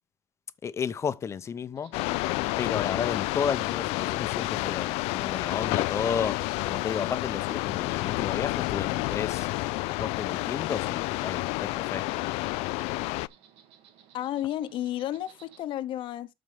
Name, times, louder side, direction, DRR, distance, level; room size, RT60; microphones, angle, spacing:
voice 1, 0.6-1.9 2.6-9.5 9.9-12.2, left 7 dB, 25° left, 0.7 m, -33 dB
Insect, 1.8-15.6, right 9 dB, 65° right, 1.8 m, -58 dB
sound 1, 1.9-13.3, left 21 dB, 80° left, 0.4 m, -29 dB
Wind instrument woodwind instrument, 2.2-6.7, right 6 dB, 45° right, 5.3 m, -61 dB
voice 2, 14.1-16.3, left 12 dB, 55° left, 0.9 m, -32 dB
13.0 x 4.6 x 3.5 m
cardioid pair, 150°, 10 cm